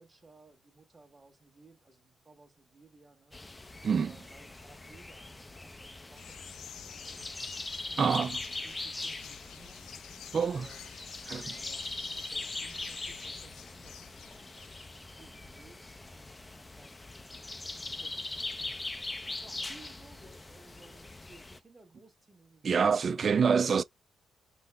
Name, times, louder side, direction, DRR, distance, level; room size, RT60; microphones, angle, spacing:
voice 1, 0.0-3.4 4.0-7.3 8.6-9.8 10.4-10.9 11.5-17.5 17.9-23.5, right 3 dB, 20° right, 1.4 m, -59 dB
sound 1, 3.3-21.6, left 2 dB, 15° left, 0.5 m, -41 dB
sound 2, 6.1-15.0, left 9 dB, 80° left, 0.5 m, -49 dB
voice 2, 8.0-8.4 10.3-10.7 11.3-11.6 22.6-23.8, right 6 dB, 45° right, 0.3 m, -26 dB
5.5 x 2.1 x 3.4 m
cardioid pair, 95°, 0 cm